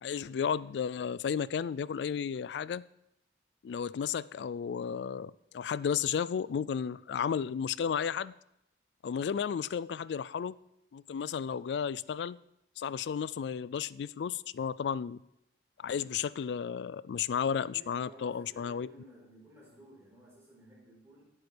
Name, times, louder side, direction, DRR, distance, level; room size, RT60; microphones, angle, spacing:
voice 1, 0.0-2.8 3.6-8.3 9.0-10.6 10.9-12.4 12.8-15.2 15.8-18.9, left 7 dB, 75° left, 0.3 m, -33 dB
voice 2, 17.7-21.2, equal, 15° right, 4.5 m, -55 dB
17.0 x 8.0 x 3.4 m
head